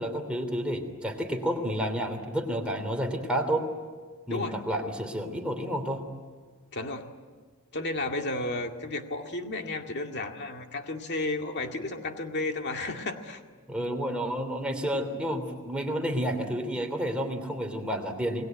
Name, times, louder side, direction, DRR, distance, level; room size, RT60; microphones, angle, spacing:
voice 1, 0.0-3.7 4.3-6.0 13.7-18.4, equal, 5° right, 2 dB, 3.1 m, -30 dB
voice 2, 6.7-7.1 7.7-13.4, left 2 dB, 50° left, 4 dB, 2.1 m, -33 dB
28.0 x 20.0 x 9.4 m, 1.5 s
head